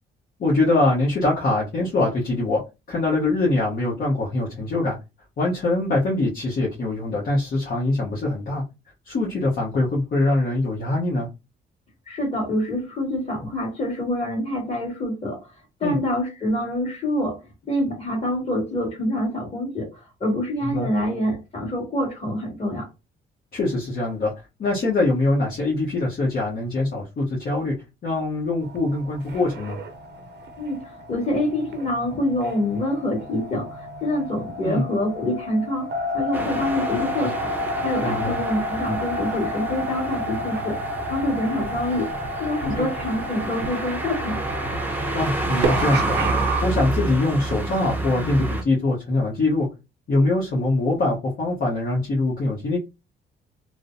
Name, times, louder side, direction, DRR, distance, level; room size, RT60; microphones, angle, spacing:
voice 1, 0.4-2.6 2.9-5.0 5.4-8.6 9.0-11.3 15.8-16.0 20.6-20.9 23.5-24.3 24.6-27.8 28.0-29.8 34.6-34.9 38.0-38.4 42.6-42.9 45.1-46.2 46.6-49.7 50.1-52.8, left 2 dB, 50° left, 1.0 m, -23 dB
voice 2, 12.1-15.4 15.8-17.4 17.7-22.9 30.6-37.5 37.8-40.8 41.1-42.1 42.4-44.7, left 1 dB, 30° left, 1.8 m, -26 dB
sound 1, 28.6-46.6, equal, 60° right, 0.6 m, -31 dB
sound 2, 36.3-48.6, right 2 dB, 10° right, 0.7 m, -29 dB
3.1 x 2.0 x 2.6 m
cardioid pair, 90°, 20 cm